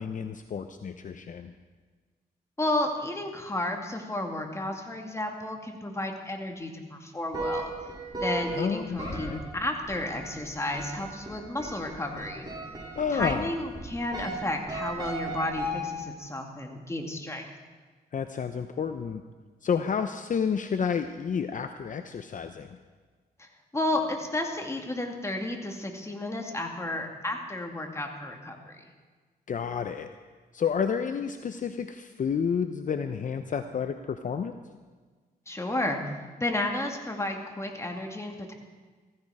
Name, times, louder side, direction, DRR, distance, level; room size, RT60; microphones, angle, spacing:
voice 1, 0.0-1.5 8.5-9.4 12.9-13.5 18.1-19.2 19.6-22.7 29.5-30.1 30.5-34.5, left 6 dB, 50° left, 8 dB, 0.7 m, -30 dB
voice 2, 2.6-7.7 8.2-12.5 13.1-17.4 23.7-28.8 35.5-36.0 36.4-38.5, left 1 dB, 15° left, 2 dB, 2.3 m, -32 dB
sound 1, 7.3-16.3, right 1 dB, 25° right, 6.2 m, -37 dB
15.5 x 15.0 x 4.9 m, 1.4 s
cardioid pair, 90°, 17 cm